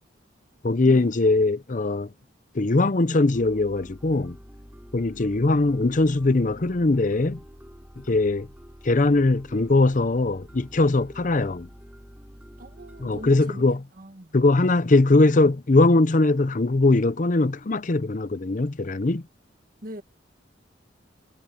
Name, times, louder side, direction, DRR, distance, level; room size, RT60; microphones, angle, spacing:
voice 1, 0.6-2.1 2.5-4.4 4.9-7.4 8.0-8.5 8.8-11.7 13.0-13.8 14.3-19.2, left 2 dB, 45° left, 0.7 m, -21 dB
sound 1, 3.3-13.4, equal, 10° right, 3.8 m, -47 dB
voice 2, 12.6-14.4 19.8-20.0, equal, 50° right, 1.9 m, -41 dB
head